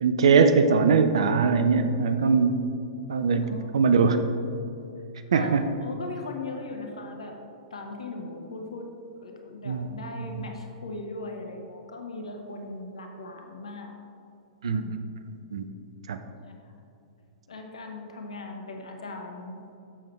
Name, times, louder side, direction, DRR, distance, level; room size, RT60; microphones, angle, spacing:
voice 1, 0.0-2.6 3.1-4.2 5.3-5.6 9.7-9.9 14.6-14.8 15.5-15.7 16.1-16.2, right 5 dB, 60° right, 8 dB, 0.4 m, -21 dB
voice 2, 3.4-4.2 5.3-7.4 7.7-8.9 9.2-13.9 14.6-15.0 16.4-16.7 17.5-19.6, left 3 dB, 70° left, 3 dB, 0.9 m, -38 dB
7.7 x 6.6 x 3.2 m, 2.7 s
figure-of-eight pair, 105°, 3 cm